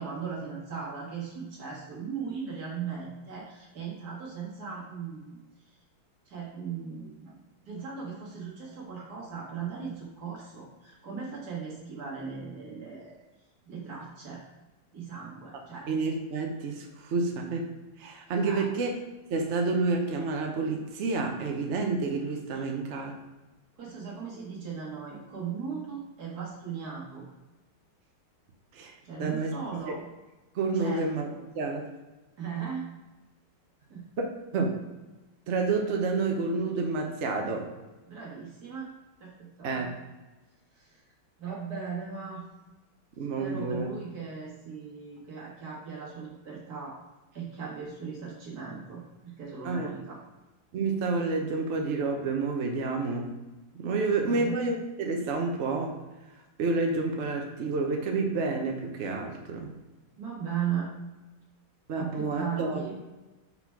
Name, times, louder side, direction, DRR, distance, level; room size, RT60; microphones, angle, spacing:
voice 1, 0.0-5.4 6.3-7.4 7.7-13.2 13.7-14.4 14.9-15.9 18.4-18.6 22.5-22.6 23.8-27.3 29.0-30.0 30.7-31.4 32.4-32.9 33.9-34.1 38.1-38.9 39.2-39.9 40.7-41.0 41.4-42.5 43.4-47.0 47.3-50.2 54.0-54.6 60.2-60.9 61.9-62.9, right 6 dB, 50° right, -4 dB, 2.1 m, -38 dB
voice 2, 15.9-17.7 18.0-18.9 19.3-23.1 28.7-28.9 29.2-29.6 29.9-30.0 30.5-31.3 31.5-31.8 34.2-34.8 35.5-37.7 39.6-39.9 43.2-43.9 49.6-49.9 50.7-53.3 53.7-56.0 56.6-59.7 61.9-62.8, right 3 dB, 65° right, 2 dB, 0.7 m, -29 dB
5.7 x 4.0 x 4.6 m, 1.1 s
omnidirectional pair, 2.3 m